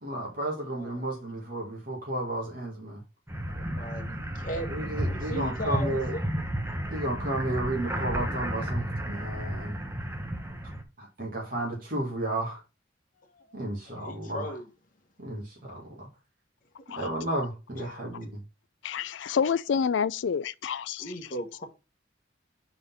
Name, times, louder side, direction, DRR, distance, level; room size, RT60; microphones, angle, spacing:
voice 1, 0.0-3.0 4.7-6.1 6.9-9.8 11.0-12.6 13.5-14.4 15.2-16.1 17.0-18.4, right 1 dB, 50° right, 2.0 m, -33 dB
voice 2, 0.6-1.2 3.5-6.3 13.2-14.7 17.7-18.0 21.0-21.6, equal, 45° left, 1.1 m, -38 dB
sound 1, 3.3-10.8, right 1 dB, 15° right, 0.9 m, -32 dB
voice 3, 18.8-21.1, left 6 dB, 70° left, 0.4 m, -28 dB
4.9 x 4.0 x 5.5 m
head